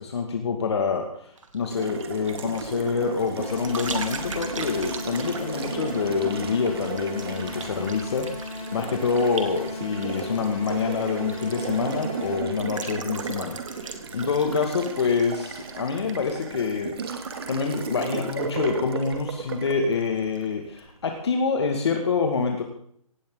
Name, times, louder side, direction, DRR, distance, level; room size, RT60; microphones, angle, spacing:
voice 1, 0.0-22.6, left 5 dB, 45° left, 3 dB, 2.3 m, -27 dB
sound 1, 1.4-19.7 20.0-20.4, right 4 dB, 60° right, 2.9 m, -41 dB
Water tap faucet, 1.7-20.9, right 5 dB, 40° right, 2.5 m, -35 dB
sound 2, 3.4-12.4, left 2 dB, 10° left, 4.6 m, -37 dB
18.0 x 16.5 x 4.0 m, 0.66 s
hypercardioid pair, 165°, 18 cm